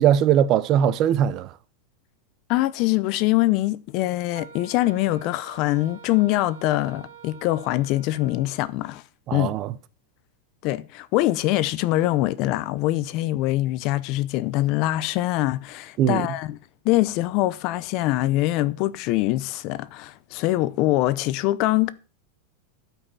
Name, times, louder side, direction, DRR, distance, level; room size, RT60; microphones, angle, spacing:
voice 1, 0.0-1.5 9.3-9.7 16.0-16.3, right 10 dB, 30° right, 0.6 m, -20 dB
voice 2, 2.5-9.0 9.3-9.5 10.6-16.6 16.8-21.9, left 17 dB, 40° left, 0.6 m, -23 dB
Wind instrument woodwind instrument, 4.3-8.7, right 7 dB, 80° right, 2.7 m, -47 dB
12.5 x 5.5 x 7.2 m
supercardioid pair, 165°, 0 cm